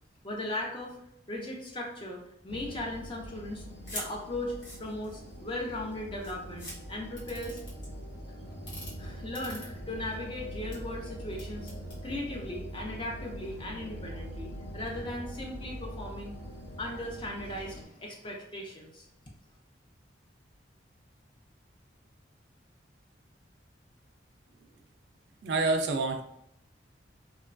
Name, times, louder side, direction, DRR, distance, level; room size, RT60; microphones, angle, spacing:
voice 1, 0.2-1.0 1.3-7.6 8.4-8.5 9.0-11.7 12.0-16.3 16.8-19.1, left 1 dB, 25° left, 0 dB, 0.5 m, -38 dB
sound 1, 2.5-17.8, equal, 65° left, 1.2 m, -43 dB
sound 2, 3.9-4.1 4.5-5.4 5.9-6.0 6.2-6.7 7.2-7.9 8.5-8.9 9.3-10.1 10.5-10.8 11.3-12.0, left 1 dB, 85° left, 1.2 m, -42 dB
voice 2, 25.4-26.2, right 3 dB, 65° right, 5 dB, 0.3 m, -27 dB
2.9 x 2.2 x 2.5 m, 0.77 s
head